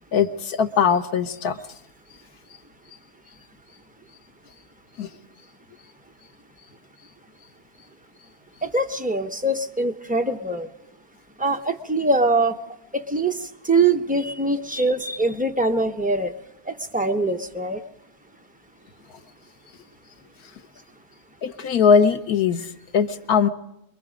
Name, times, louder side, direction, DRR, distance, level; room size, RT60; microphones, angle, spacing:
voice 1, 0.1-1.6 5.0-5.1 21.4-23.5, left 6 dB, 80° left, 8 dB, 1.5 m, -20 dB
voice 2, 8.6-10.7 11.4-12.6 12.9-16.3 16.7-17.8, right 2 dB, 10° right, 4 dB, 0.5 m, -23 dB
26.0 x 22.5 x 5.1 m, 0.82 s
omnidirectional pair, 1.6 m